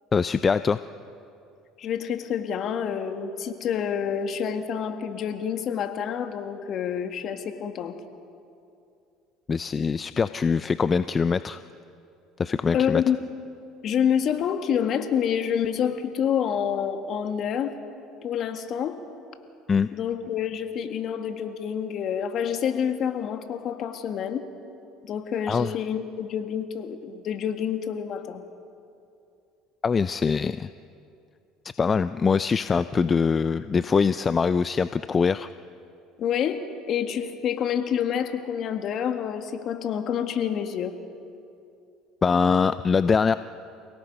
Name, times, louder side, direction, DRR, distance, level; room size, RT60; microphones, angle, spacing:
voice 1, 0.1-0.8 9.5-11.6 12.4-13.0 19.7-19.9 25.5-25.7 29.8-30.7 31.8-35.5 42.2-43.3, left 5 dB, 30° left, 13 dB, 0.5 m, -23 dB
voice 2, 1.8-8.0 12.7-13.2 13.8-17.7 18.2-19.0 19.9-24.4 25.0-28.4 36.2-40.9, left 8 dB, 55° left, 6 dB, 1.8 m, -28 dB
29.5 x 17.5 x 5.5 m, 2.6 s
hypercardioid pair, 80°, 0 cm